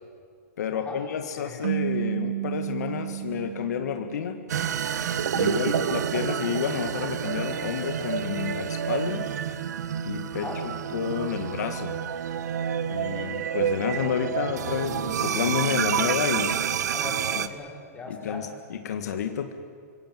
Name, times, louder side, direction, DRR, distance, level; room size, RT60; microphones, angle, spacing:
voice 1, 0.6-4.4 5.3-9.3 10.1-12.0 12.9-16.6 17.4-17.5 18.1-19.5, left 8 dB, 75° left, 6 dB, 1.8 m, -30 dB
sound 1, 1.6-4.8, right 12 dB, 70° right, 1.2 m, -32 dB
sound 2, 4.5-17.5, right 8 dB, 85° right, 1.3 m, -28 dB
voice 2, 16.9-18.5, left 3 dB, 15° left, -2 dB, 6.1 m, -39 dB
25.5 x 23.5 x 7.6 m, 2.1 s
hypercardioid pair, 150°, 9 cm